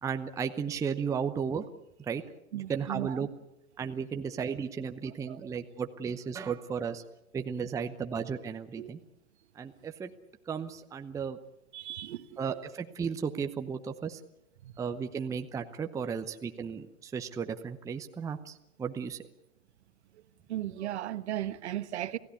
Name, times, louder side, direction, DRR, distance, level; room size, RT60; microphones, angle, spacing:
voice 1, 0.0-1.6 2.0-2.2 2.5-3.3 3.8-7.0 7.3-9.0 9.6-10.1 10.5-11.4 12.4-14.2 14.8-19.2, right 6 dB, 10° right, 0.8 m, -34 dB
voice 2, 2.5-3.3 5.3-5.5 8.8-8.9 11.7-12.4 14.6-14.7 20.5-22.2, right 13 dB, 55° right, 1.3 m, -36 dB
28.0 x 16.5 x 8.3 m
figure-of-eight pair, 110°, 41 cm